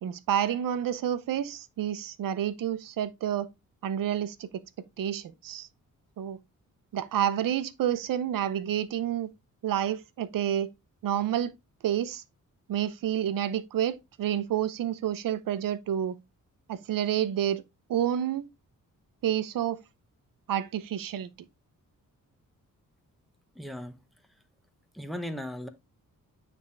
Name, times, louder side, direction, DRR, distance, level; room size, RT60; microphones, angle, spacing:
voice 1, 0.0-3.5 3.8-4.5 5.0-5.7 6.2-6.4 6.9-9.3 9.6-10.7 11.0-11.5 11.8-12.2 12.7-16.2 16.7-17.6 17.9-18.4 19.2-19.8 20.5-21.3, right 10 dB, 80° right, 0.8 m, -29 dB
voice 2, 23.6-24.0 24.9-25.7, left 1 dB, ahead, 0.9 m, -36 dB
9.2 x 3.5 x 3.2 m
wide cardioid pair, 135°, 33 cm